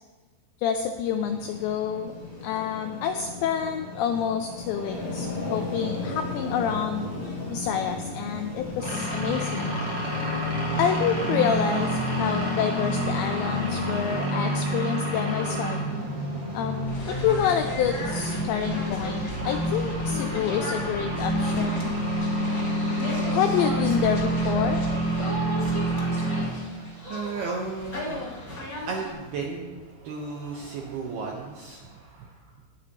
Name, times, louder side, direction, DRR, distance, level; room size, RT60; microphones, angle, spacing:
voice 1, 0.6-2.1 2.4-7.1 7.5-9.7 10.8-15.8 16.5-21.9 23.0-24.8, left 8 dB, 90° left, 5 dB, 2.5 m, -28 dB
sound 1, 1.0-14.3, left 2 dB, 15° left, 2.5 m, -36 dB
sound 2, 8.8-26.4, equal, 30° right, 4.7 m, -28 dB
sound 3, 16.9-29.1, left 1 dB, 55° left, 0.9 m, -36 dB
voice 2, 25.6-32.4, right 4 dB, 75° right, -1 dB, 2.3 m, -36 dB
18.0 x 13.5 x 3.0 m, 1.3 s
omnidirectional pair, 5.9 m